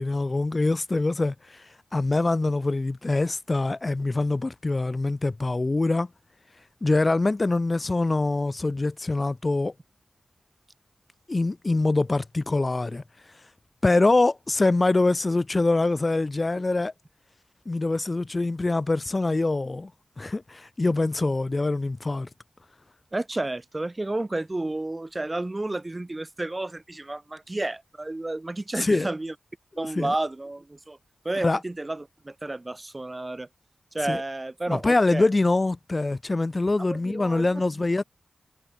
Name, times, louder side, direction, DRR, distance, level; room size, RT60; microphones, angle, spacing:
voice 1, 0.0-6.1 6.8-9.7 11.3-13.0 13.8-16.9 17.7-19.9 20.2-22.3 28.8-29.1 30.0-30.1 31.4-31.6 34.0-34.2 34.7-38.0, left 2 dB, 35° left, 0.4 m, -24 dB
voice 2, 23.1-29.3 29.8-31.0 31.3-33.5 33.9-35.3 36.9-37.6, right 2 dB, 25° right, 1.8 m, -31 dB
cardioid pair, 65°, 0 cm